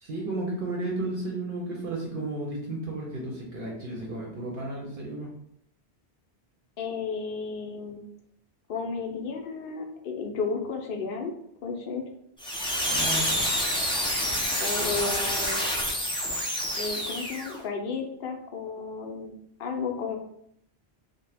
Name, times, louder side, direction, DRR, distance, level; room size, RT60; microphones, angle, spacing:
voice 1, 0.0-5.3 12.9-13.3, right 2 dB, 60° right, -3 dB, 0.8 m, -33 dB
voice 2, 6.8-8.0 8.7-11.3 11.6-12.0 14.6-15.6 16.8-20.2, left 4 dB, 65° left, 2 dB, 0.7 m, -33 dB
sound 1, 12.4-17.6, equal, 10° left, 0.3 m, -28 dB
2.8 x 2.2 x 3.3 m, 0.71 s
omnidirectional pair, 1.1 m